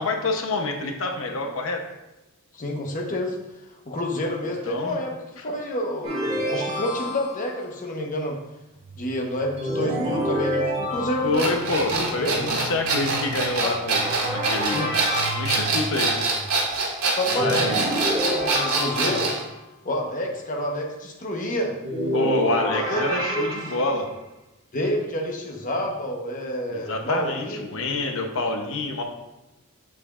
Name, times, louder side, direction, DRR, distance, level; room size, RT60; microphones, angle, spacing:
voice 1, 0.0-1.8 4.7-5.0 5.4-5.5 11.2-14.9 15.3-16.1 17.3-18.1 22.1-24.1 26.7-29.0, left 2 dB, 65° left, 3 dB, 0.9 m, -27 dB
voice 2, 2.5-3.4 3.9-8.4 8.9-11.5 11.9-12.5 13.6-13.7 14.7-14.9 17.2-19.3 19.8-21.7 22.9-23.5 24.7-27.8, left 1 dB, 40° left, 0 dB, 1.1 m, -29 dB
sound 1, 6.0-7.6 9.6-11.7 13.9-15.4 17.4-19.5 21.8-24.0, equal, 35° right, 2.3 m, -28 dB
sound 2, 8.8-16.5, right 3 dB, 60° right, 0.6 m, -39 dB
sound 3, 11.3-19.4, right 3 dB, 85° right, 1.7 m, -25 dB
7.7 x 7.0 x 2.5 m, 0.98 s
head